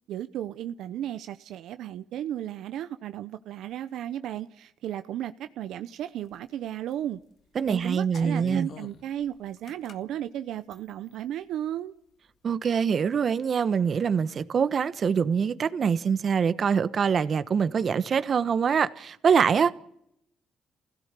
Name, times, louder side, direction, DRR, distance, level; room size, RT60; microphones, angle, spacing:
voice 1, 0.1-7.2 7.7-11.9, right 11 dB, 80° right, 0.8 m, -34 dB
sound 1, 6.3-6.4 6.9-7.2 7.7-10.0 10.7-11.2, left 6 dB, 65° left, 1.7 m, -44 dB
voice 2, 7.5-8.7 12.4-19.7, right 6 dB, 50° right, 1.2 m, -24 dB
25.5 x 16.5 x 8.3 m
cardioid pair, 90°, 0 cm